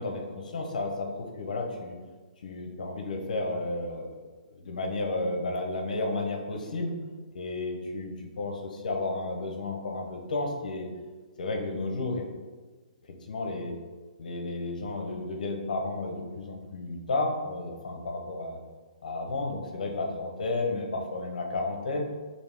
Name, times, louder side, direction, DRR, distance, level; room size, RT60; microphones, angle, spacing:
voice 1, 0.0-2.0 2.4-4.1 4.5-6.9 7.3-10.9 11.4-12.2 13.3-13.8 14.2-18.6 19.0-22.1, left 2 dB, 75° left, 2 dB, 0.8 m, -32 dB
4.1 x 2.7 x 3.4 m, 1.4 s
hypercardioid pair, 165°, 4 cm